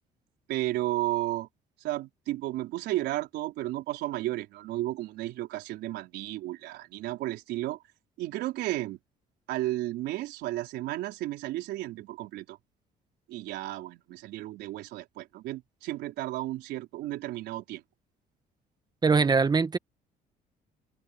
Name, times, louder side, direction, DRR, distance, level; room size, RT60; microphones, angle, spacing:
voice 1, 0.5-1.5 1.8-7.8 8.2-9.0 9.5-12.6 13.3-17.8, right 16 dB, 85° right, 4.3 m, -33 dB
voice 2, 19.0-19.8, right 4 dB, 25° right, 1.3 m, -22 dB
cardioid pair, 110°, 17 cm